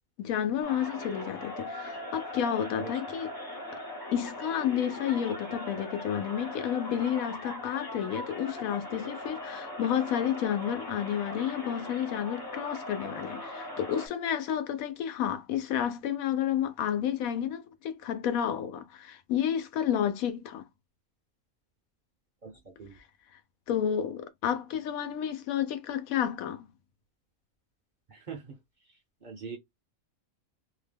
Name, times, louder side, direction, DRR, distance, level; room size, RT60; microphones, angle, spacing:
voice 1, 0.2-3.3 4.1-20.6 23.7-26.7, left 9 dB, 85° left, 1.0 m, -31 dB
sound 1, 0.6-14.1, left 1 dB, 30° left, 0.4 m, -40 dB
voice 2, 22.4-23.0 28.1-28.5 29.2-29.6, right 5 dB, 50° right, 0.6 m, -42 dB
2.7 x 2.1 x 3.2 m
omnidirectional pair, 1.4 m